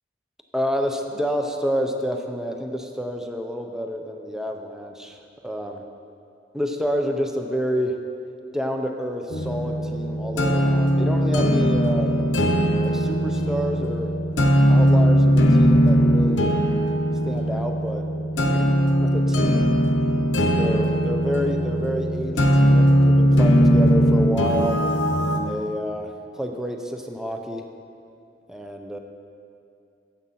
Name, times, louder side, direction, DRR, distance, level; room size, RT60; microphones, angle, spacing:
voice 1, 0.5-5.8 6.5-8.0 8.5-12.1 12.8-14.1 14.7-16.5 17.3-18.1 18.4-18.7 19.0-19.7 20.6-24.8 25.4-27.6 28.5-29.0, equal, 5° right, 4 dB, 0.4 m, -28 dB
sound 1, 9.3-25.4, equal, 90° left, 0.8 m, -19 dB
9.6 x 7.3 x 4.1 m, 2.5 s
head